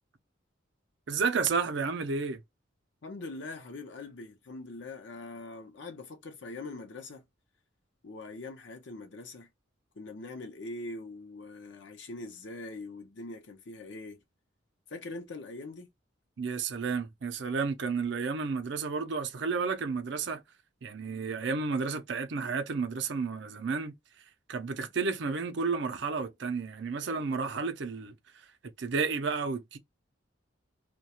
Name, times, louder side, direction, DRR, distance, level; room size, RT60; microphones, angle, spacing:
voice 1, 1.1-2.4 16.4-20.4 20.8-23.9 24.5-28.4 28.8-29.8, right 5 dB, 65° right, 0.5 m, -31 dB
voice 2, 3.0-7.2 8.0-9.5 10.0-14.2 14.9-15.9, left 2 dB, 65° left, 0.6 m, -42 dB
2.3 x 2.2 x 2.8 m
head